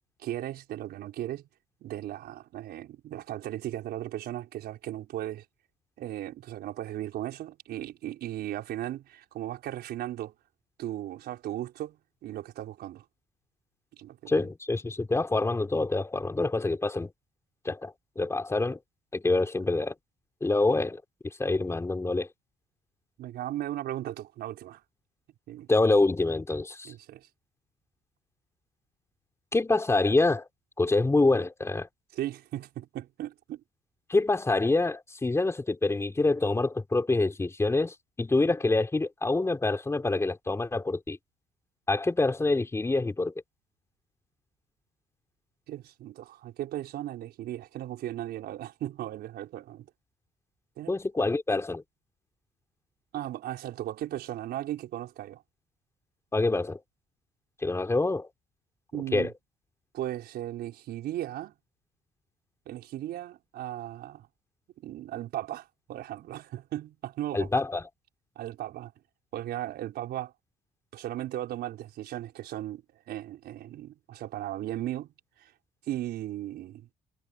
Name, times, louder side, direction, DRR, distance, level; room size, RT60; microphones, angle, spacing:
voice 1, 0.2-1.4 1.8-5.4 6.0-10.3 10.8-13.0 14.0-14.5 23.2-24.8 25.5-25.7 26.8-27.3 32.1-33.6 45.7-49.9 50.8-51.3 53.1-55.4 58.9-59.3 59.9-61.5 62.6-64.3 64.8-67.6 68.3-68.9 69.3-70.3 70.9-75.1 75.4-75.5 75.8-76.9, right 13 dB, 70° right, 5.0 m, -36 dB
voice 2, 14.3-17.1 17.6-18.8 19.1-19.9 20.4-22.3 25.7-26.9 29.5-30.5 30.8-31.9 34.1-41.2 41.9-43.3 50.9-51.8 56.3-56.8 57.6-58.3 59.1-59.3 67.3-67.8, left 2 dB, 15° left, 4.8 m, -26 dB
cardioid pair, 110°, 17 cm